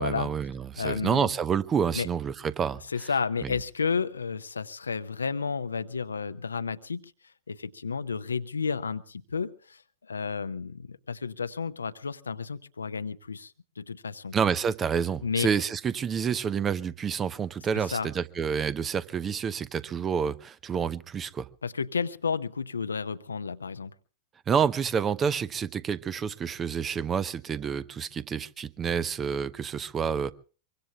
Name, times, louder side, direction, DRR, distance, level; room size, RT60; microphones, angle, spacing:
voice 1, 0.0-2.8 3.4-3.5 14.3-21.5 24.5-30.3, right 7 dB, 25° right, 18 dB, 0.8 m, -28 dB
voice 2, 0.8-1.3 1.9-2.1 2.9-7.1 7.5-9.8 10.1-14.3 15.2-15.5 17.7-18.1 21.6-23.9, left 5 dB, 75° left, 13 dB, 0.8 m, -32 dB
24.0 x 24.0 x 2.3 m, 0.38 s
figure-of-eight pair, 90°, 0 cm